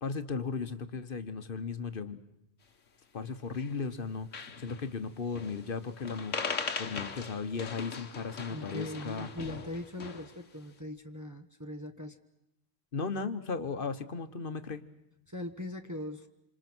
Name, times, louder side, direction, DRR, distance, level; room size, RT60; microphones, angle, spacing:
voice 1, 0.0-2.2 3.1-6.3 6.8-9.3 12.9-14.8, left 5 dB, 45° left, 10 dB, 1.4 m, -36 dB
sound 1, 3.2-3.7 4.0-4.1 4.3-4.9 5.4-5.7 6.0-10.4, left 5 dB, 80° left, 1.7 m, -39 dB
voice 2, 8.5-12.2 15.3-16.3, left 1 dB, 15° right, 5 dB, 1.1 m, -40 dB
27.0 x 27.0 x 6.2 m, 0.85 s
omnidirectional pair, 1.3 m